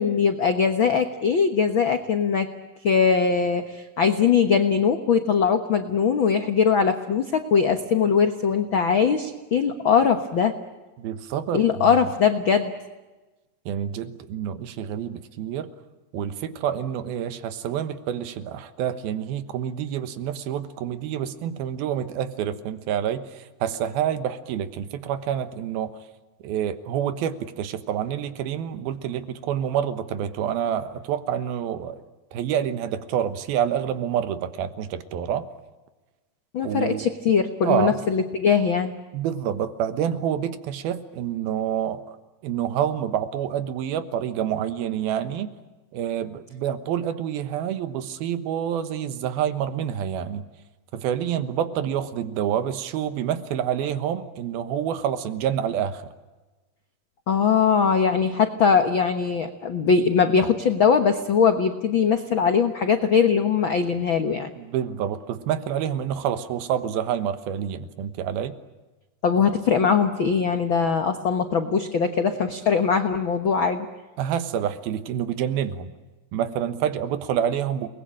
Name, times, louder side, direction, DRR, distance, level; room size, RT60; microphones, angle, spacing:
voice 1, 0.0-2.5 2.8-10.5 11.5-12.7 36.5-38.9 57.3-64.5 69.2-73.9, left 6 dB, 60° left, 7 dB, 1.3 m, -21 dB
voice 2, 11.0-12.0 13.7-15.7 16.1-26.0 26.4-32.0 32.3-35.5 36.6-37.1 37.6-38.0 39.1-42.2 42.4-45.5 45.9-50.4 50.9-56.1 64.6-68.6 74.2-75.9 76.3-77.9, right 9 dB, 90° right, 11 dB, 3.2 m, -27 dB
29.5 x 21.0 x 8.8 m, 1.2 s
omnidirectional pair, 4.2 m